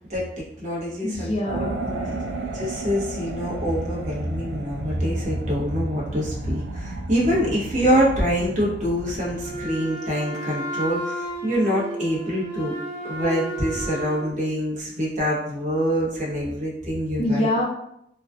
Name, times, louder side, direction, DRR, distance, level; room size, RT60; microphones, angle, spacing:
voice 1, 0.1-1.7 2.5-12.7 13.0-17.5, equal, 45° right, -5 dB, 0.8 m, -25 dB
voice 2, 1.0-2.3 17.2-17.6, left 1 dB, 35° left, 0 dB, 0.4 m, -26 dB
sound 1, 1.5-9.7, right 2 dB, 90° right, 0.3 m, -33 dB
Wind instrument woodwind instrument, 9.4-14.3, right 2 dB, 20° right, 0.9 m, -33 dB
2.5 x 2.2 x 2.2 m, 0.75 s
head